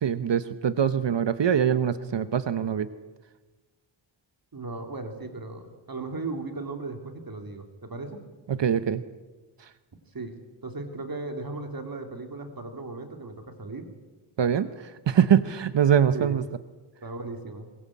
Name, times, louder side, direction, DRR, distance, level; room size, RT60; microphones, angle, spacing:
voice 1, 0.0-2.9 8.5-9.0 14.4-14.7 15.1-16.4, right 8 dB, 65° right, 12 dB, 0.9 m, -23 dB
voice 2, 4.5-8.2 10.1-10.4 10.6-13.9 16.1-16.4 17.0-17.7, right 3 dB, 50° right, 6 dB, 2.8 m, -36 dB
21.5 x 21.5 x 8.5 m, 1.3 s
wide cardioid pair, 130°, 46 cm